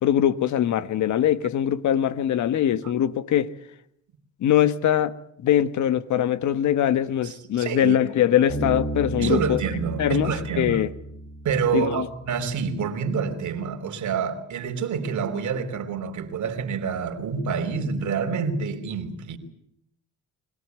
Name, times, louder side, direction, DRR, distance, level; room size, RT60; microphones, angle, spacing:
voice 1, 0.0-3.5 4.4-5.2 5.4-9.6 10.0-10.9 11.7-12.1, left 10 dB, 70° left, 1.4 m, -22 dB
voice 2, 7.2-8.0 9.2-10.8 11.4-19.4, right 6 dB, 70° right, 3.5 m, -27 dB
Bass guitar, 8.5-12.0, right 1 dB, 25° left, 5.0 m, -33 dB
24.0 x 17.5 x 9.6 m
cardioid pair, 90°, 30 cm